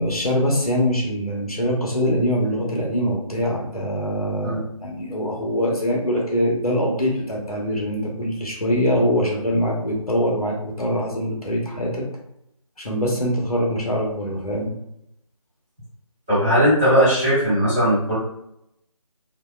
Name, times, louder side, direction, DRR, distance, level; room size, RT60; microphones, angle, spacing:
voice 1, 0.0-12.0 12.8-14.7, equal, 90° left, -2 dB, 1.0 m, -23 dB
voice 2, 16.3-18.2, equal, 5° right, -17 dB, 0.6 m, -18 dB
2.8 x 2.1 x 2.2 m, 0.79 s
figure-of-eight pair, 165°, 19 cm